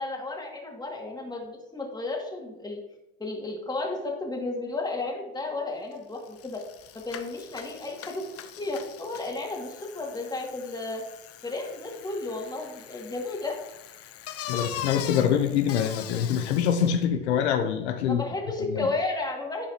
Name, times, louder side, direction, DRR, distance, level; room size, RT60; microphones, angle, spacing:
voice 1, 0.0-2.8 3.2-6.6 6.9-8.2 8.6-11.0 11.4-13.6 18.1-19.7, left 3 dB, 10° left, -1 dB, 2.1 m, -33 dB
Bicycle, 5.9-6.0 6.3-17.0, left 10 dB, 45° left, 0.8 m, -42 dB
voice 2, 14.5-18.2 18.7-18.9, left 8 dB, 85° left, 6 dB, 0.7 m, -25 dB
9.9 x 4.7 x 2.9 m, 0.94 s
hypercardioid pair, 80°, 32 cm